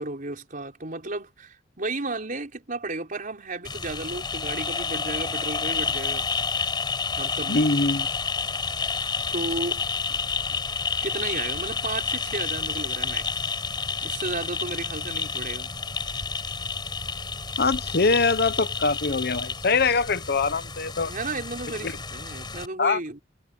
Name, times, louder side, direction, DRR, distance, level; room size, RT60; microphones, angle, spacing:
voice 1, 0.0-6.3 7.1-7.7 8.9-9.0 9.3-9.8 10.1-10.2 11.0-13.4 14.0-15.7 21.0-23.2, right 2 dB, 45° right, 4.6 m, -33 dB
sound 1, 3.6-22.7, left 5 dB, 25° left, 5.6 m, -30 dB
voice 2, 7.5-8.1 17.6-21.1 21.8-21.9 22.8-23.0, left 3 dB, 55° left, 1.0 m, -23 dB
head